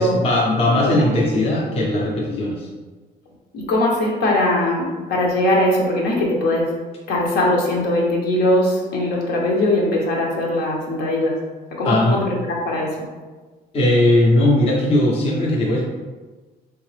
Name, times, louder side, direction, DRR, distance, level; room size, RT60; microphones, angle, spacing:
voice 1, 0.0-2.7 11.8-12.2 13.7-15.8, left 1 dB, 35° left, -3 dB, 0.7 m, -18 dB
voice 2, 3.5-6.7 7.1-11.3 11.7-13.0, left 1 dB, 75° left, -2 dB, 1.1 m, -20 dB
3.6 x 3.6 x 3.3 m, 1.3 s
cardioid pair, 160°, 17 cm